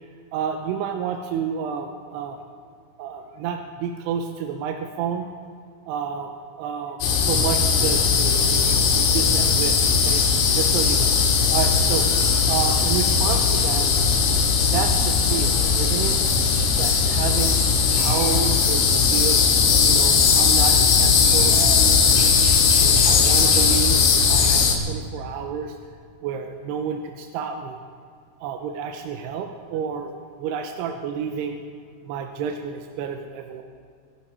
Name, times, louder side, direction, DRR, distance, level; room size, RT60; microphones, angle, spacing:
voice 1, 0.3-2.4 3.0-5.3 5.9-10.2 10.6-11.1 11.5-12.1 12.5-13.9 14.7-16.2 16.8-17.6 18.0-19.4 19.8-22.0 22.8-25.8 26.2-27.8 28.4-30.1 30.4-31.6 32.1-33.6, right 7 dB, 80° right, 4 dB, 2.5 m, -30 dB
sound 1, 7.0-24.8, left 5 dB, 80° left, 4.0 m, -18 dB
26.0 x 11.0 x 4.4 m, 2.2 s
omnidirectional pair, 5.4 m